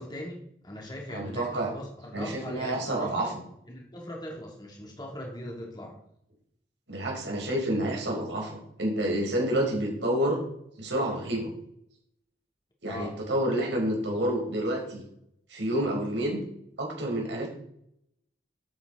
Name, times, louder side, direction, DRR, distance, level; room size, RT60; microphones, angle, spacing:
voice 1, 0.0-3.3 3.7-6.0 12.8-13.2, left 1 dB, 25° left, -1 dB, 3.1 m, -40 dB
voice 2, 1.1-1.7 2.1-3.3 6.9-10.4 10.8-11.5 12.8-15.0 15.5-16.4 16.8-17.5, right 1 dB, 80° right, -1 dB, 4.5 m, -29 dB
12.0 x 8.9 x 4.1 m, 0.73 s
head